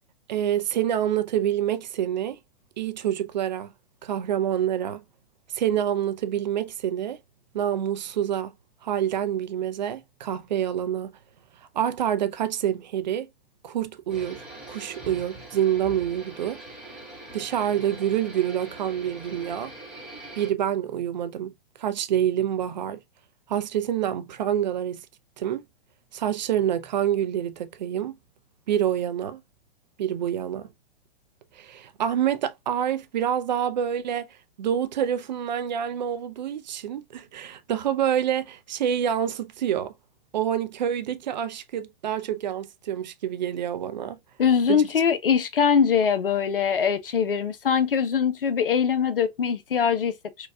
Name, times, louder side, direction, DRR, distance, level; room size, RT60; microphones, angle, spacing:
voice 1, 0.3-2.4 2.8-3.7 4.0-5.0 5.5-7.2 7.5-8.5 8.8-11.1 11.7-13.3 13.6-16.6 17.3-19.7 20.4-21.5 21.8-23.0 23.5-25.1 25.4-25.6 26.1-28.2 28.7-29.4 30.0-30.7 31.5-34.3 34.6-39.9 40.3-44.2 44.7-44.9, right 10 dB, 50° right, 0.5 m, -27 dB
sound 1, 14.1-20.5, right 2 dB, ahead, 1.1 m, -42 dB
voice 2, 44.4-50.5, left 7 dB, 70° left, 0.6 m, -22 dB
4.0 x 2.3 x 2.3 m
figure-of-eight pair, 110°, 29 cm